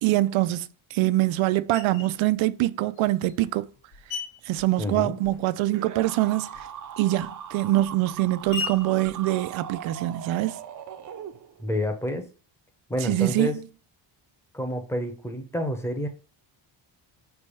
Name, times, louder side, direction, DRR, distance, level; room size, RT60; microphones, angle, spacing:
voice 1, 0.0-3.7 4.4-6.7 7.0-10.6 13.0-13.5, right 16 dB, 90° right, 0.6 m, -24 dB
Screech, 1.7-2.2 2.9-5.7 5.9-10.2, left 5 dB, 85° left, 1.2 m, -40 dB
voice 2, 4.8-5.2 11.6-12.3 12.9-13.6 14.5-16.1, equal, 5° left, 0.7 m, -29 dB
sound 1, 5.7-11.8, right 9 dB, 45° right, 0.5 m, -40 dB
5.3 x 3.4 x 5.3 m
cardioid pair, 155°, 46 cm